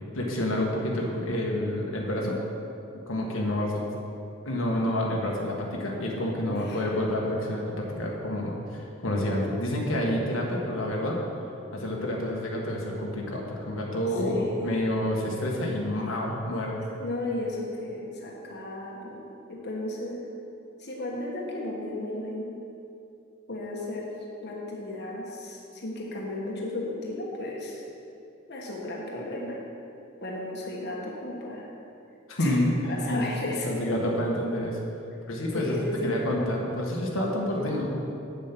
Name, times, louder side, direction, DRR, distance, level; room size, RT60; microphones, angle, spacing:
voice 1, 0.1-2.4 3.1-3.8 4.4-11.2 11.7-16.8 32.3-32.7 33.1-33.2 33.6-34.8 35.2-35.8 36.0-37.9, left 1 dB, 90° left, -2 dB, 1.5 m, -28 dB
voice 2, 6.5-6.9 14.2-14.8 15.2-15.4 17.0-20.2 20.8-22.5 23.5-24.1 24.4-27.8 28.5-29.6 30.2-31.6 32.4-32.6 32.8-33.8 35.5-36.2, left 2 dB, 55° left, -3 dB, 1.3 m, -34 dB
8.5 x 7.3 x 5.9 m, 2.7 s
head